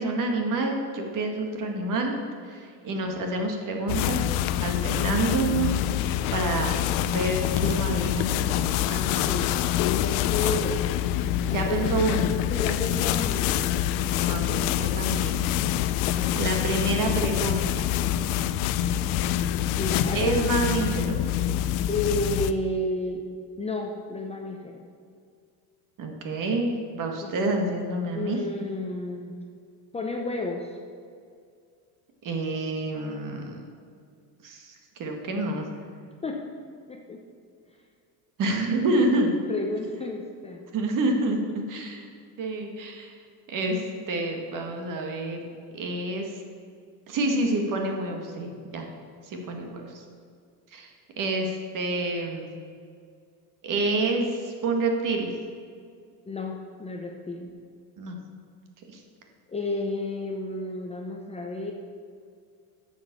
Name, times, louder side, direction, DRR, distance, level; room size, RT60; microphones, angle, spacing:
voice 1, 0.0-2.2 2.4-4.2 4.6-9.2 11.4-12.3 14.3-15.4 16.3-17.9 20.1-21.2 26.0-28.4 32.2-33.6 34.4-35.7 38.4-39.4 40.7-42.1 42.4-43.2 43.5-45.4 45.7-46.3 47.1-48.9 49.2-50.0 50.7-52.5 53.6-55.3 58.0-58.2 58.9-59.0, right 2 dB, 45° right, 2 dB, 1.8 m, -28 dB
sound 1, 3.9-22.5, left 11 dB, 75° left, 0.6 m, -26 dB
voice 2, 8.9-9.5 9.8-10.8 11.5-11.8 12.5-13.6 14.5-14.6 16.1-16.3 19.6-20.3 21.9-23.2 23.6-24.8 27.2-27.3 28.1-29.3 29.9-30.7 36.2-36.4 36.9-37.2 38.9-39.2 39.5-40.7 49.5-49.8 56.3-57.5 59.5-61.7, left 2 dB, 15° left, 1 dB, 0.7 m, -32 dB
9.2 x 6.4 x 7.2 m, 2.2 s
cardioid pair, 135°, 45 cm